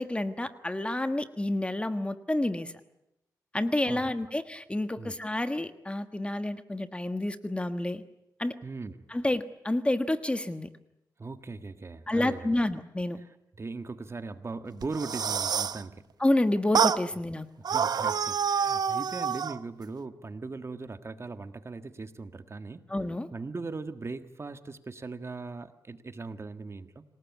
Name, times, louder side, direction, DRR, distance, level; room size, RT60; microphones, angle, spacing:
voice 1, 0.0-2.7 3.5-8.0 8.4-8.5 9.1-10.7 12.1-13.2 16.2-17.5 22.9-23.3, left 1 dB, 15° left, 10 dB, 1.4 m, -29 dB
voice 2, 8.6-9.0 11.2-12.6 13.6-16.1 17.6-22.9 23.3-27.0, right 3 dB, 40° right, 9 dB, 1.7 m, -39 dB
sound 1, 14.8-15.8 16.7-17.0 17.6-19.6, right 7 dB, 75° right, 0.8 m, -27 dB
26.5 x 18.5 x 9.5 m, 0.87 s
cardioid pair, 80°, 7 cm